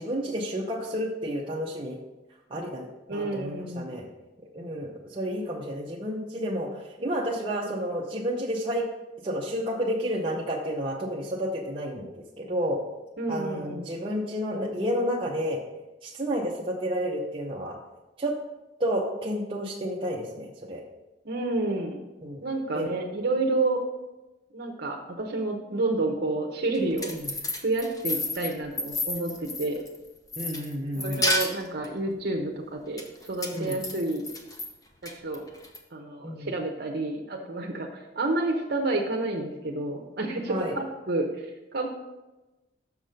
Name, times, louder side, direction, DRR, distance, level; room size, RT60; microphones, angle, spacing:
voice 1, 0.0-2.0 2.5-4.1 4.5-6.7 7.0-8.8 9.2-12.8 13.3-15.6 16.0-17.8 18.2-18.3 18.8-20.8 22.2-22.4 22.7-22.9 27.1-27.2 30.4-31.2 33.5-33.8 36.2-36.5 40.5-40.8, equal, 30° right, -3 dB, 0.7 m, -30 dB
voice 2, 3.1-4.0 13.2-13.9 21.2-22.0 22.4-23.8 24.5-27.1 27.6-29.8 31.0-34.2 35.0-35.4 35.9-41.9, right 2 dB, 55° right, 1 dB, 0.9 m, -29 dB
sound 1, 26.7-30.0 30.3-31.9 33.0-34.7 35.1-35.8, left 2 dB, 20° left, 0.8 m, -31 dB
6.5 x 6.0 x 5.1 m, 1.1 s
head